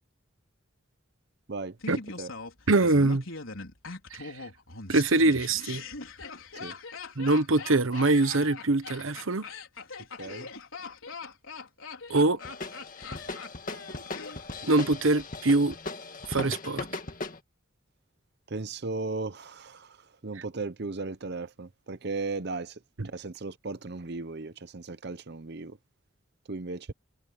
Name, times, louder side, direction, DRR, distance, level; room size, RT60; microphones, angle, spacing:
Laughter, 1.8-14.8 15.1-15.2, left 4 dB, 85° left, 4.4 m, -42 dB
voice 1, 2.7-3.2 4.1-4.3 4.9-5.8 7.2-9.5 12.1-12.4 14.6-15.7 16.3-16.8 23.0-23.1, right 2 dB, 80° right, 1.1 m, -23 dB
sound 1, 12.4-17.4, left 3 dB, 40° left, 1.9 m, -38 dB
voice 2, 18.5-20.0 20.2-25.8 26.5-26.9, right 3 dB, 55° right, 0.8 m, -36 dB
head